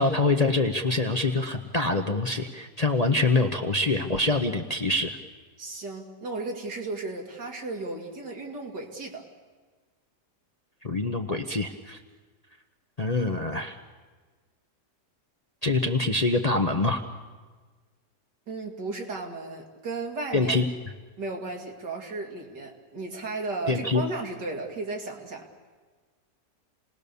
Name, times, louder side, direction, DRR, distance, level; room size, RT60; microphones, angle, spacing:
voice 1, 0.0-5.2 10.8-12.0 13.0-13.8 15.6-17.0 20.3-20.6 23.7-24.0, left 2 dB, 30° left, 4 dB, 0.8 m, -25 dB
voice 2, 5.6-9.2 18.5-20.6 21.2-25.5, right 3 dB, 80° right, 1 dB, 3.0 m, -35 dB
28.5 x 19.0 x 6.9 m, 1.4 s
omnidirectional pair, 1.8 m